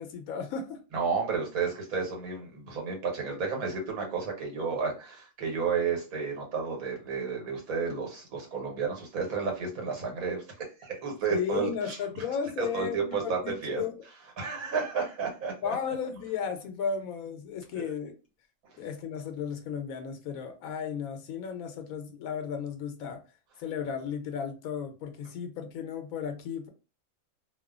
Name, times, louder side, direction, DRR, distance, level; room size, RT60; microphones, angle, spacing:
voice 1, 0.0-0.8 11.3-14.0 15.6-18.1 18.8-23.2 23.6-26.7, left 7 dB, 80° left, 1.0 m, -34 dB
voice 2, 0.9-10.4 10.8-12.2 12.6-13.8 14.4-15.7 17.7-17.9, right 5 dB, 90° right, 1.4 m, -32 dB
2.8 x 2.1 x 2.3 m
omnidirectional pair, 1.5 m